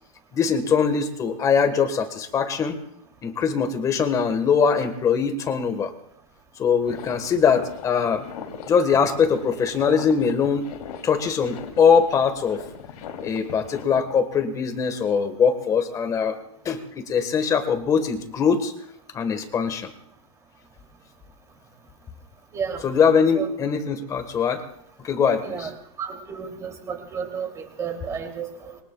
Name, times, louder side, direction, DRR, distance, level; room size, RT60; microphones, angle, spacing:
voice 1, 0.3-2.8 3.2-5.9 6.6-8.2 8.7-10.6 11.0-12.6 13.2-16.4 16.6-18.7 19.1-19.9 22.8-24.6 25.0-25.7, left 6 dB, 15° left, 8 dB, 1.5 m, -22 dB
sound 1, 6.8-14.0, left 7 dB, 85° left, 3.1 m, -40 dB
voice 2, 22.5-22.8 23.3-23.5 25.4-28.8, right 6 dB, 15° right, 2 dB, 2.9 m, -32 dB
26.0 x 23.0 x 2.3 m, 0.73 s
supercardioid pair, 165°, 19 cm